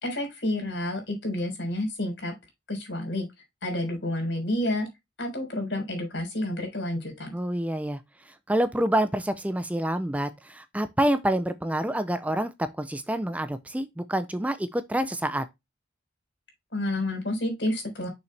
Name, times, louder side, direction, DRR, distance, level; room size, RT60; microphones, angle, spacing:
voice 1, 0.0-2.3 2.7-3.3 3.6-4.9 5.2-7.4 16.7-18.1, left 1 dB, 70° left, 3.9 m, -29 dB
voice 2, 7.3-15.5, right 1 dB, 10° right, 0.5 m, -27 dB
6.6 x 5.6 x 3.3 m
head